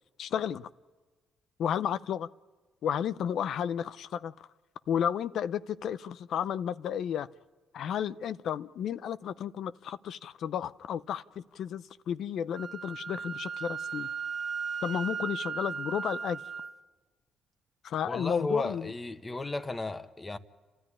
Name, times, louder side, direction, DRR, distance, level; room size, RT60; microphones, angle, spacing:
voice 1, 0.2-0.7 1.6-2.3 2.8-4.5 4.9-7.3 7.7-14.1 14.8-16.4 17.8-18.9, left 8 dB, 70° left, 0.6 m, -32 dB
Wind instrument woodwind instrument, 12.5-16.7, right 6 dB, 50° right, 1.4 m, -36 dB
voice 2, 18.0-20.4, left 2 dB, 20° left, 1.2 m, -34 dB
29.0 x 13.5 x 9.9 m
cardioid pair, 90°, 0 cm